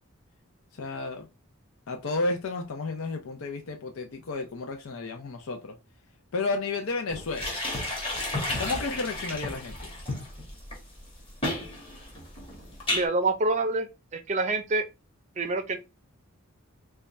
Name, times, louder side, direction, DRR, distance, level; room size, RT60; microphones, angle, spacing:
voice 1, 0.7-1.3 1.9-5.8 6.3-7.6 8.6-9.9, left 3 dB, 80° left, 0.5 m, -32 dB
sound 1, 7.1-13.0, left 1 dB, 25° left, 1.1 m, -32 dB
voice 2, 12.9-13.9 14.1-14.9 15.4-15.8, right 2 dB, 30° right, 0.5 m, -26 dB
3.4 x 2.2 x 4.0 m
head